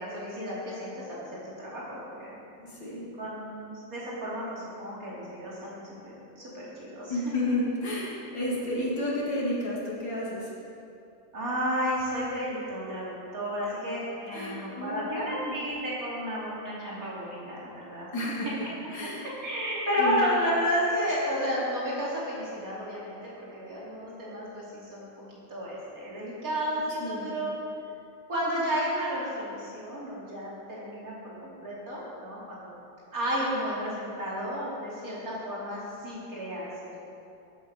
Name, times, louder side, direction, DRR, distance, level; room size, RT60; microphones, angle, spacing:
voice 1, 0.0-2.3 3.2-7.2 11.3-18.1 19.4-27.6 28.3-32.7 33.1-37.1, equal, 50° right, -7 dB, 3.4 m, -32 dB
voice 2, 2.6-3.1 7.1-10.5 14.3-15.6 18.1-18.6 18.9-19.3 20.0-20.2 27.0-27.5, left 1 dB, 80° left, -6 dB, 3.2 m, -31 dB
13.0 x 8.3 x 5.4 m, 2.7 s
omnidirectional pair, 2.0 m